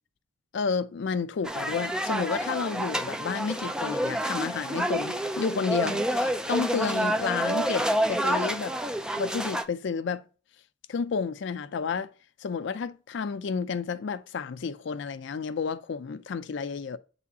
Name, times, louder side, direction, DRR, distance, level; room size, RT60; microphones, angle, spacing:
voice 1, 0.5-8.8 9.2-10.2 10.9-12.1 12.4-17.0, left 5 dB, 65° left, 0.4 m, -31 dB
sound 1, 1.4-9.6, right 1 dB, 5° right, 0.4 m, -28 dB
8.3 x 4.2 x 2.7 m
head